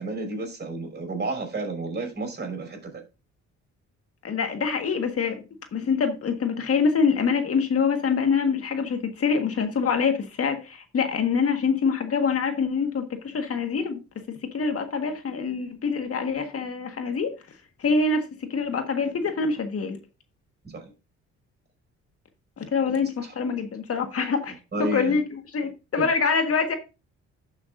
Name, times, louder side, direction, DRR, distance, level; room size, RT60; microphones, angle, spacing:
voice 1, 0.0-3.0 20.6-20.8 23.2-23.3 24.7-25.2 26.0-26.1, right 2 dB, 35° right, 5.7 m, -31 dB
voice 2, 4.2-5.4 5.7-14.0 14.3-17.3 17.8-20.0 22.6-26.7, left 5 dB, 50° left, 1.6 m, -25 dB
12.0 x 7.1 x 2.5 m
cardioid pair, 90°, 30 cm